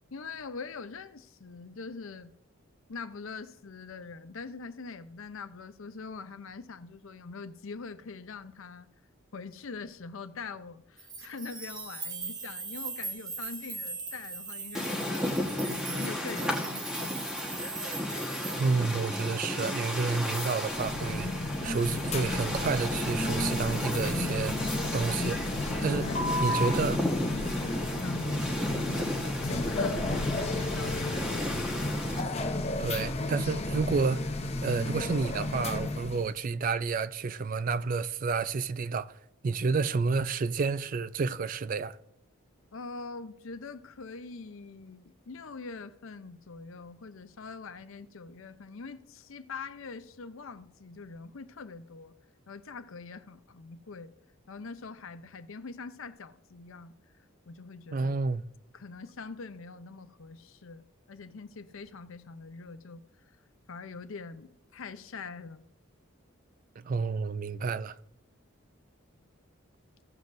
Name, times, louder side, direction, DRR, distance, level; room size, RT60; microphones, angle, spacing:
voice 1, 0.1-2.3 2.9-8.9 9.3-17.6 25.9-27.8 28.0-31.7 42.7-52.1 52.5-54.1 54.5-56.9 57.5-58.1 58.7-63.0 63.7-65.6, left 4 dB, 70° left, 0.6 m, -43 dB
sound 1, 11.0-18.6, right 4 dB, 20° right, 0.7 m, -40 dB
sound 2, 14.8-32.2, left 1 dB, 5° right, 1.2 m, -34 dB
voice 2, 18.5-24.6 24.9-25.4 25.8-26.1 26.4-27.0 32.8-34.3 34.6-39.1 39.4-42.0 57.9-58.5 66.8-67.9, right 4 dB, 40° right, 0.3 m, -30 dB
sound 3, 20.7-36.3, left 2 dB, 30° left, 0.6 m, -32 dB
16.0 x 7.4 x 2.6 m
head